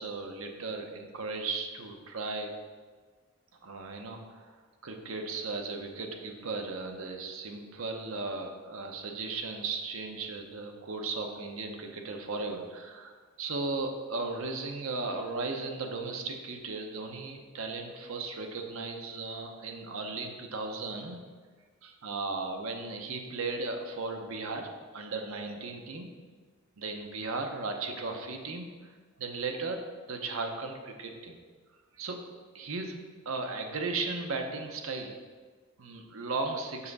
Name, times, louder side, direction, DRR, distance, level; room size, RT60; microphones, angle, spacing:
voice 1, 0.0-2.5 3.6-4.6 4.8-13.1 13.4-21.2 21.8-26.1 26.8-28.7 29.2-29.8 30.1-31.4 32.0-32.2 32.5-35.2 35.8-36.9, right 3 dB, 70° right, 3 dB, 0.8 m, -36 dB
5.7 x 5.6 x 4.0 m, 1.5 s
head